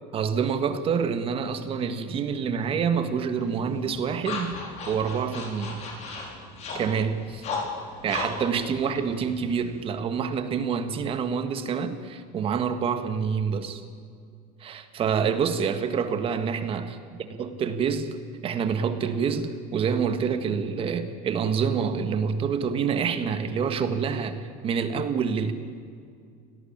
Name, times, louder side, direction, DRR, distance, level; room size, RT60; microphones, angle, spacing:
voice 1, 0.1-4.6 4.9-5.8 6.7-7.4 8.0-13.8 14.6-16.9 17.4-25.5, right 6 dB, 30° right, 9 dB, 1.7 m, -27 dB
sound 1, 3.4-9.9, left 3 dB, 40° left, 5.1 m, -36 dB
25.5 x 18.0 x 8.9 m, 2.3 s
cardioid pair, 165°, 18 cm